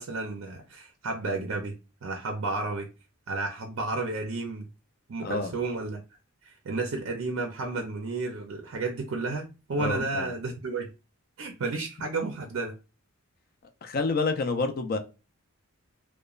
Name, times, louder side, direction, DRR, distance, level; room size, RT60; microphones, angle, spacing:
voice 1, 0.0-1.7 2.0-2.9 3.3-4.7 5.1-6.0 6.4-10.9 11.4-12.7, right 3 dB, 60° right, 0.4 m, -32 dB
voice 2, 5.2-5.5 9.8-10.3 13.8-15.0, left 3 dB, 45° left, 0.4 m, -28 dB
2.9 x 2.1 x 2.3 m
head